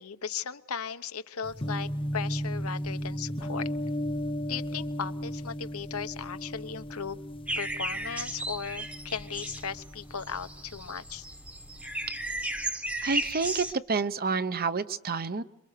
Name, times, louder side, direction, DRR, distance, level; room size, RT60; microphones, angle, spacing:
voice 1, 0.0-3.7 4.5-7.2 7.6-11.3, left 6 dB, 75° left, 11 dB, 1.0 m, -37 dB
sound 1, 1.4-11.5 11.8-12.6, equal, 25° left, 0.9 m, -36 dB
sound 2, 7.5-13.7, right 1 dB, 5° right, 1.1 m, -35 dB
voice 2, 13.0-15.4, right 4 dB, 45° right, 12 dB, 0.9 m, -29 dB
27.0 x 24.0 x 6.7 m, 0.84 s
head